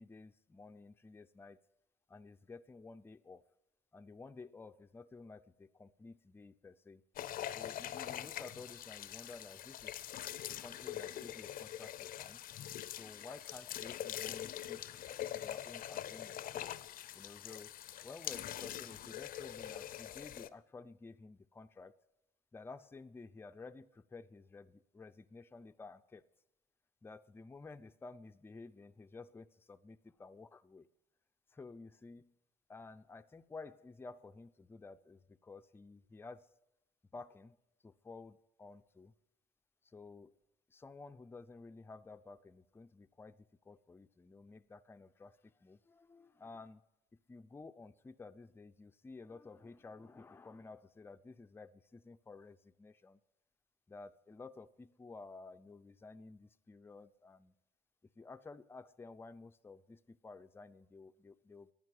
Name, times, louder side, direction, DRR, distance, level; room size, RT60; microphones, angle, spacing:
voice 1, 0.0-1.6 2.1-3.4 3.9-7.0 7.5-10.0 10.5-12.4 13.0-14.9 15.3-16.4 17.1-17.7 18.0-21.9 22.5-26.3 27.0-30.9 31.5-32.4 32.7-36.5 37.1-37.6 37.8-39.1 39.8-40.4 40.7-46.8 47.1-53.2 53.9-57.5 58.2-61.7, left 3 dB, 15° left, 9 dB, 0.5 m, -53 dB
sound 1, 7.2-20.5, left 12 dB, 60° left, 0.6 m, -44 dB
11.0 x 9.4 x 9.6 m, 0.89 s
cardioid pair, 110°, 17 cm